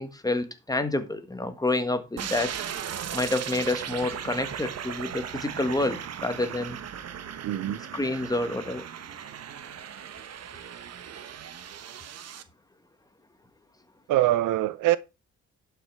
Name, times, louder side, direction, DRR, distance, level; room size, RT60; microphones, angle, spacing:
voice 1, 0.0-2.5 3.1-6.8 7.8-8.9, left 2 dB, 10° left, 1.6 m, -28 dB
sound 1, 2.2-12.4, right 9 dB, 55° right, 1.2 m, -37 dB
voice 2, 7.4-7.8 14.1-15.0, right 14 dB, 85° right, 0.8 m, -23 dB
11.0 x 5.9 x 4.7 m
cardioid pair, 90°, 30 cm